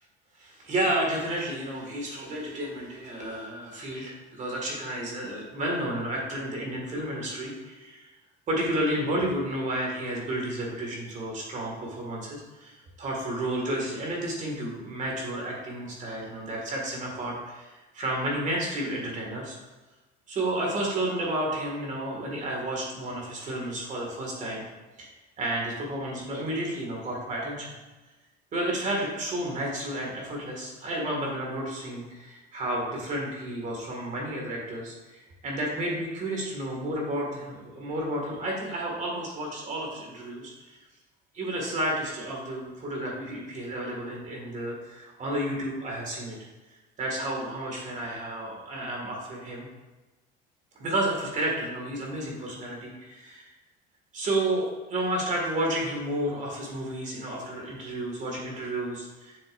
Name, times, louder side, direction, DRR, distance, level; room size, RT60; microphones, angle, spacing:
voice 1, 0.4-8.0 8.5-19.6 20.3-24.7 25.0-25.1 25.4-27.8 28.5-40.8 41.3-46.4 47.0-49.7 50.8-53.5 54.1-59.4, right 1 dB, 40° right, -1 dB, 2.2 m, -31 dB
7.3 x 6.6 x 2.7 m, 1.2 s
cardioid pair, 130°, 20 cm